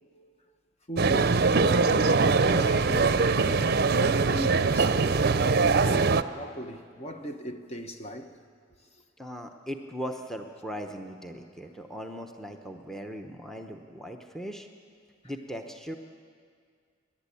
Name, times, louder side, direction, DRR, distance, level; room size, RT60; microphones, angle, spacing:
voice 1, 0.9-8.3, left 1 dB, 35° left, 1.1 m, -38 dB
sound 1, 1.0-6.2, right 4 dB, 55° right, 0.6 m, -22 dB
voice 2, 9.2-14.7 15.2-16.0, equal, ahead, 0.9 m, -39 dB
29.5 x 11.5 x 8.5 m
head